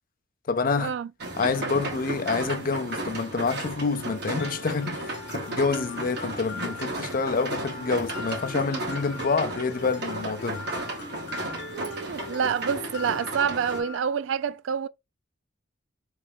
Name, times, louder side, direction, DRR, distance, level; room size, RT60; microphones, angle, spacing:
voice 1, 0.5-1.0 1.4-10.7, left 4 dB, 45° left, 0.5 m, -27 dB
sound 1, 1.2-13.8, right 2 dB, 60° right, 1.7 m, -34 dB
Mallet percussion, 4.4-14.0, left 4 dB, 65° left, 0.9 m, -41 dB
voice 2, 11.7-14.9, right 7 dB, 80° right, 0.3 m, -27 dB
3.3 x 3.2 x 3.4 m
head